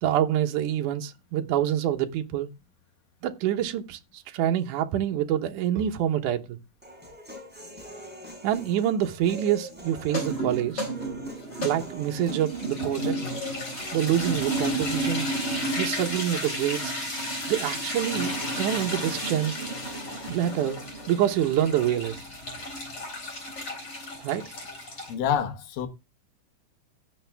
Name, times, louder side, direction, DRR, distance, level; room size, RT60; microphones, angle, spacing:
voice 1, 0.0-2.5 3.2-4.0 4.3-6.6 8.4-10.8 11.6-13.2 13.9-15.3 15.8-16.9 17.5-18.3 18.6-19.5 20.3-20.8 21.1-22.1 24.2-24.5, right 11 dB, 75° right, 2.4 m, -26 dB
Human voice, 6.8-14.8, left 1 dB, 5° right, 5.1 m, -44 dB
sound 1, 10.0-25.1, right 1 dB, 30° left, 4.3 m, -32 dB
voice 2, 25.1-25.9, left 8 dB, 85° left, 3.0 m, -27 dB
16.5 x 6.5 x 3.4 m
omnidirectional pair, 3.8 m